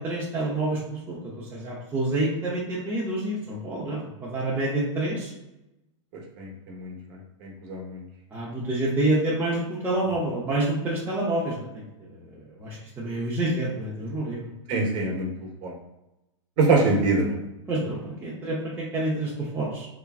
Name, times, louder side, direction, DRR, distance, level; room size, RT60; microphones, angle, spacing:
voice 1, 0.0-5.3 8.3-11.8 12.6-14.4 17.7-19.9, right 2 dB, 15° right, -7 dB, 0.6 m, -28 dB
voice 2, 6.4-6.9 7.4-8.0 14.7-15.3 15.6-15.7 16.6-17.4, right 3 dB, 50° right, -1 dB, 1.0 m, -24 dB
3.0 x 2.3 x 2.4 m, 0.93 s
hypercardioid pair, 115°, 16 cm